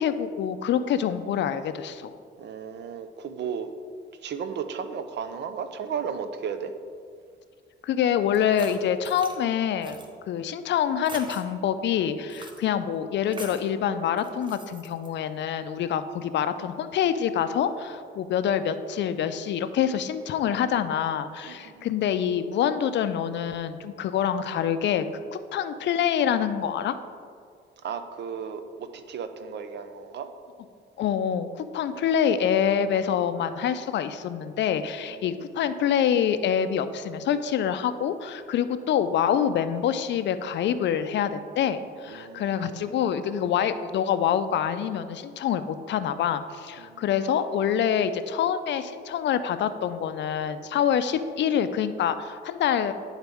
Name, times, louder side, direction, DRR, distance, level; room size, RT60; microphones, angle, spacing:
voice 1, 0.0-2.1 7.8-10.0 10.3-25.0 25.3-26.9 31.0-52.9, left 8 dB, 65° left, 11 dB, 0.4 m, -26 dB
voice 2, 2.4-3.7 4.2-6.7 21.4-21.9 27.8-30.3 32.0-32.1 35.1-35.4 42.1-43.0 46.8-47.0, right 7 dB, 60° right, 9 dB, 0.6 m, -35 dB
sound 1, 8.3-9.4 9.8-10.1 11.0-11.4 12.3-12.6 13.3-13.7 14.2-15.1, right 2 dB, 25° right, 0.9 m, -43 dB
10.5 x 4.0 x 3.5 m, 2.2 s
cardioid pair, 90°, 20 cm